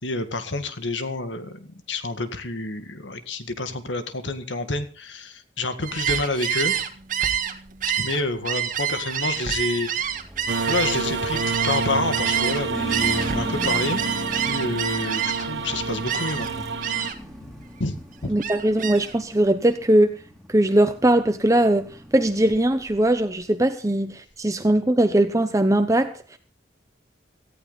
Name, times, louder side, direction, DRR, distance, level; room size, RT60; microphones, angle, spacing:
voice 1, 0.0-6.8 7.9-10.2 10.7-14.0 14.5-17.5 17.8-18.3, left 2 dB, 85° left, 2.0 m, -29 dB
Gull seagull, 5.8-12.6 12.9-15.6 16.0-16.5 16.8-17.3 17.7-19.1, right 9 dB, 45° right, 1.7 m, -27 dB
sound 1, 9.9-23.1, equal, ahead, 3.3 m, -38 dB
sound 2, 10.5-17.1, right 4 dB, 75° right, 1.2 m, -29 dB
voice 2, 18.3-20.1 20.5-21.9 22.1-26.4, right 1 dB, 20° right, 0.9 m, -20 dB
18.0 x 14.0 x 4.1 m
head